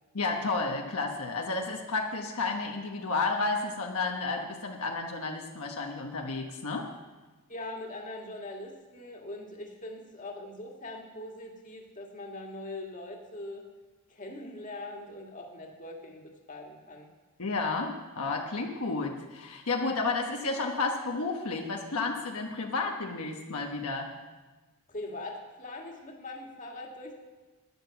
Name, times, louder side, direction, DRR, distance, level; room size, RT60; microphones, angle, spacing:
voice 1, 0.1-6.9 17.4-24.1, left 3 dB, 70° left, 1 dB, 1.2 m, -31 dB
voice 2, 7.5-13.6 14.1-17.1 24.9-27.1, left 2 dB, 35° left, 1 dB, 1.9 m, -42 dB
12.5 x 10.5 x 7.0 m, 1.2 s
head